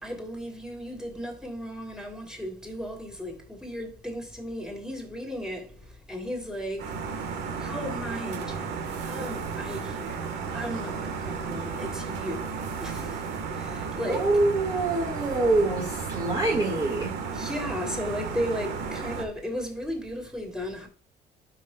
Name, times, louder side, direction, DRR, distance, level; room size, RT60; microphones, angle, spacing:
voice 1, 0.0-6.9 7.6-14.3 17.3-20.9, equal, 5° right, 3.1 m, -35 dB
sound 1, 6.8-19.2, right 5 dB, 80° right, 1.5 m, -34 dB
voice 2, 14.1-17.1, right 2 dB, 25° right, 1.9 m, -25 dB
12.5 x 6.2 x 2.3 m
cardioid pair, 110°, 17 cm